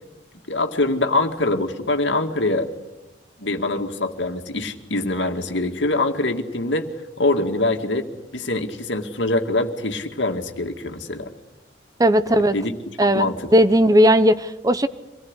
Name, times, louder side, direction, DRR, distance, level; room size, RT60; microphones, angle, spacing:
voice 1, 0.5-2.7 3.4-6.9 7.2-8.1 8.3-11.3 12.3-12.7 13.1-13.4, left 2 dB, 80° left, 6 dB, 2.2 m, -24 dB
voice 2, 12.0-12.5 13.0-13.3 13.5-14.9, equal, 20° right, 13 dB, 0.8 m, -16 dB
25.5 x 19.0 x 9.8 m, 1.0 s
head